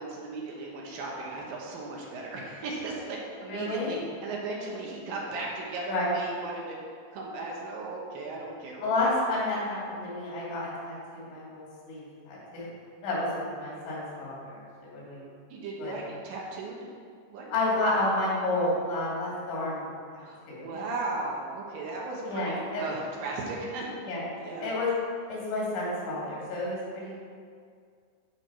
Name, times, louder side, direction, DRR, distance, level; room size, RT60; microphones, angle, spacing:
voice 1, 0.0-6.8 7.1-9.1 15.5-16.9 17.3-17.5 20.2-24.7, right 3 dB, 65° right, -3 dB, 2.6 m, -36 dB
voice 2, 3.5-3.9 5.9-6.1 8.8-12.7 13.0-15.2 15.8-16.0 17.5-20.7 22.2-22.9 24.0-24.2 24.6-24.9 25.3-27.2, left 2 dB, 85° left, -6 dB, 5.0 m, -30 dB
14.0 x 4.8 x 4.8 m, 2.1 s
omnidirectional pair, 5.1 m